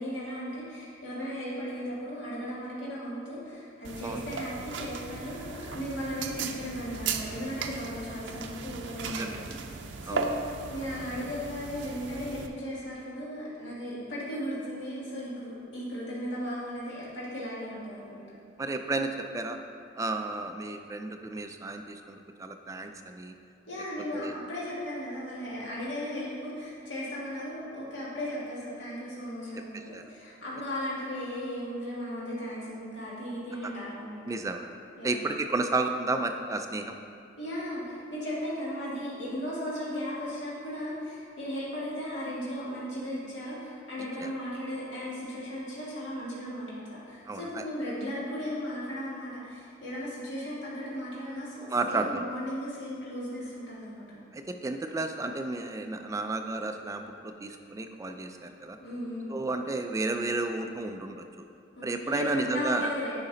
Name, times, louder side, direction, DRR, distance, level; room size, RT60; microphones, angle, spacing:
voice 1, 0.0-9.5 9.8-18.3 23.7-34.4 35.0-35.2 37.4-54.2 58.8-59.4 61.8-63.1, equal, 75° left, -7 dB, 1.9 m, -36 dB
sound 1, 3.8-12.5, right 5 dB, 75° right, 0.5 m, -37 dB
voice 2, 9.0-9.5 10.1-10.3 18.6-19.6 19.9-23.3 24.1-24.3 29.7-30.0 33.6-33.7 34.3-34.7 35.0-37.0 44.2-44.3 47.3-47.6 51.7-52.2 54.3-58.8 59.3-61.2 61.8-62.9, right 2 dB, 15° right, 6 dB, 0.3 m, -32 dB
9.5 x 5.0 x 3.9 m, 2.4 s
head